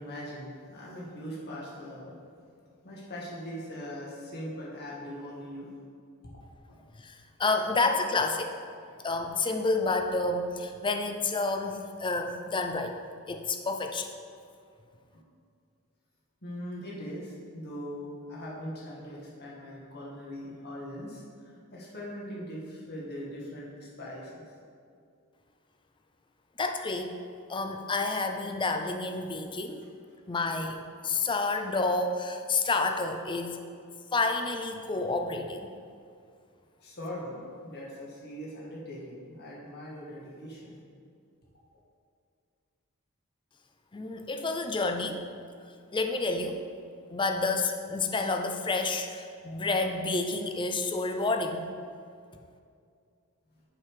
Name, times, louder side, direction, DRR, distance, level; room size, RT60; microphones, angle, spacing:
voice 1, 0.0-2.2 2.8-5.7 6.7-6.8 7.7-7.8 15.1-15.2 16.4-24.4 30.3-30.4 36.8-40.8 41.7-41.8, equal, 50° left, -5 dB, 1.8 m, -41 dB
voice 2, 7.0-8.5 9.0-13.0 13.3-14.1 26.6-27.1 27.5-29.8 30.3-33.6 34.1-35.7 43.9-45.2 45.9-46.6 47.1-51.7, left 3 dB, 20° left, 5 dB, 0.5 m, -29 dB
6.8 x 5.5 x 4.9 m, 2.3 s
head